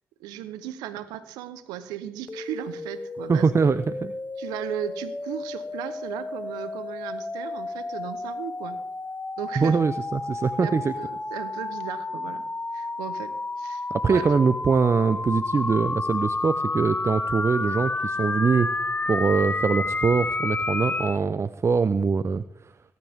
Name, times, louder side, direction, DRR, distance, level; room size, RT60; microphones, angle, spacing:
voice 1, 0.2-3.7 4.4-8.8 9.4-9.8 10.6-12.4 12.7-14.3, right 11 dB, 90° right, 13 dB, 1.0 m, -36 dB
sound 1, 2.3-21.2, left 3 dB, 25° left, 0.8 m, -31 dB
voice 2, 3.3-4.1 9.6-10.9 13.9-18.8 19.1-22.7, right 5 dB, 45° right, 13 dB, 0.7 m, -23 dB
20.5 x 12.5 x 3.6 m, 0.73 s
hypercardioid pair, 45°, 7 cm